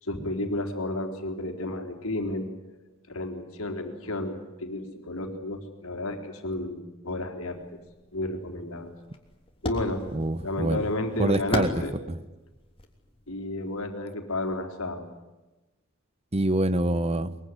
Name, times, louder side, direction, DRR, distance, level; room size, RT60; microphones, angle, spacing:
voice 1, 0.0-2.5 3.1-7.6 8.1-8.9 9.6-10.0 10.4-11.9 13.3-15.1, left 2 dB, 85° left, 4 dB, 4.0 m, -32 dB
sound 1, 7.5-13.8, left 1 dB, 25° left, 3.3 m, -39 dB
voice 2, 10.1-10.8 11.2-11.7 12.1-12.2 16.3-17.4, right 1 dB, 30° right, 15 dB, 1.0 m, -25 dB
23.0 x 23.0 x 9.9 m, 1.1 s
head